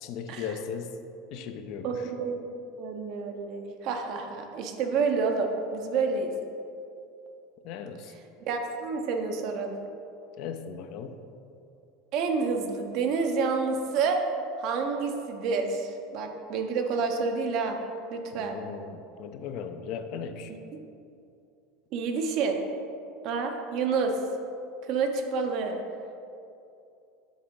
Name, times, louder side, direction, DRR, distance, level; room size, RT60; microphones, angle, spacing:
voice 1, 0.0-1.0 1.3-2.1 7.6-8.1 10.4-11.2 18.4-20.5, left 6 dB, 60° left, 8 dB, 0.4 m, -37 dB
voice 2, 1.8-6.3 8.5-9.7 12.1-14.2 14.6-17.8 18.1-18.6 20.7-20.9 21.9-22.6 23.2-24.1 24.9-25.8, right 4 dB, 60° right, 4 dB, 0.7 m, -29 dB
7.2 x 3.7 x 3.7 m, 2.6 s
supercardioid pair, 105°, 0 cm